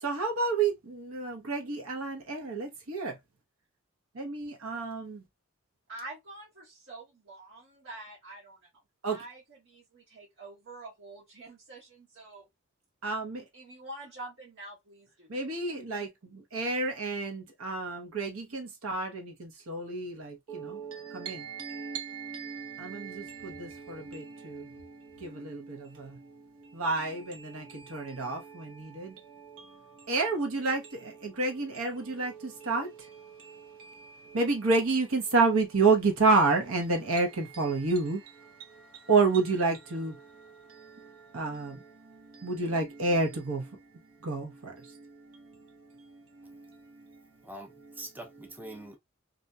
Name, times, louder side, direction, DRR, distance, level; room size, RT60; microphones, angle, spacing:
voice 1, 0.0-3.2 4.1-5.2 9.0-9.2 13.0-13.5 15.3-43.8 44.2-47.2, right 3 dB, 85° right, 1.0 m, -31 dB
voice 2, 5.9-8.6 9.0-12.4 13.5-15.3, right 2 dB, 60° right, 1.0 m, -46 dB
voice 3, 47.4-49.0, right 1 dB, 10° right, 0.5 m, -44 dB
2.7 x 2.7 x 2.2 m
head